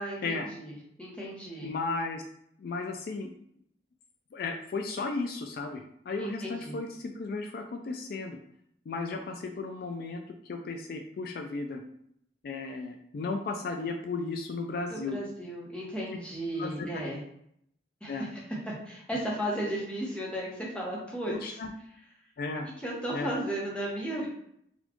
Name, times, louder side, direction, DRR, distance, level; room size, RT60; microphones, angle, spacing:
voice 1, 0.0-1.7 6.2-6.8 14.9-17.2 18.0-18.4 18.8-21.6 22.8-24.3, right 1 dB, 5° left, -4 dB, 0.9 m, -35 dB
voice 2, 1.6-2.2 2.6-3.3 4.3-8.4 8.9-11.8 12.4-15.2 16.6-17.0 18.1-18.3 21.3-21.7 22.4-22.7 23.1-23.3, left 3 dB, 55° left, 5 dB, 0.3 m, -35 dB
4.1 x 2.3 x 3.0 m, 0.71 s
head